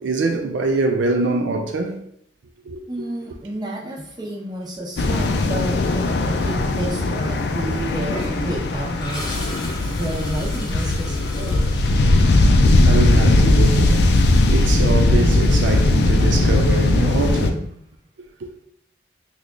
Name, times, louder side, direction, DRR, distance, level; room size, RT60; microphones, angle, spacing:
voice 1, 0.0-2.0 2.6-3.1 12.8-14.1 14.5-17.5, right 3 dB, 80° right, 0.4 m, -24 dB
voice 2, 2.9-9.4 9.9-11.6 17.5-17.7, right 1 dB, 25° right, 0.7 m, -31 dB
sound 1, 5.0-17.5, left 2 dB, 65° left, 0.4 m, -18 dB
Toilet flush, 8.1-13.2, left 1 dB, 25° left, 0.7 m, -35 dB
3.2 x 2.3 x 3.7 m
head